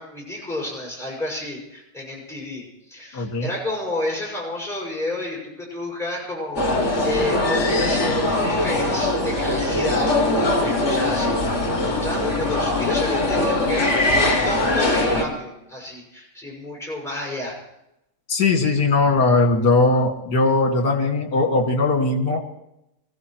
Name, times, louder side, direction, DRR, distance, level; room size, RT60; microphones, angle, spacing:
voice 1, 0.0-17.6, left 1 dB, ahead, -5 dB, 6.2 m, -31 dB
voice 2, 3.1-3.5 18.3-22.4, left 3 dB, 60° left, 3 dB, 2.6 m, -19 dB
sound 1, 6.6-15.2, left 2 dB, 35° left, 2.3 m, -21 dB
25.0 x 16.0 x 3.1 m, 0.86 s
omnidirectional pair, 2.1 m